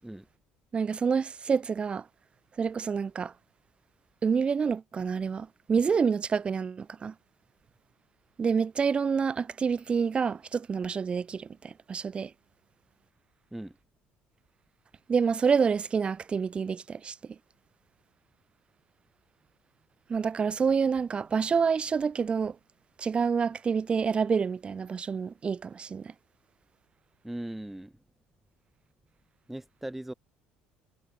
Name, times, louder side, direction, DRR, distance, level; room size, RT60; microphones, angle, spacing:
voice 1, 0.7-2.1 2.6-3.3 4.2-7.1 8.4-12.3 15.1-17.4 20.1-22.6 23.0-26.1, right 6 dB, 30° right, 0.7 m, -28 dB
voice 2, 27.2-27.9 29.5-30.1, right 1 dB, 5° right, 1.3 m, -39 dB
cardioid pair, 110°, 4 cm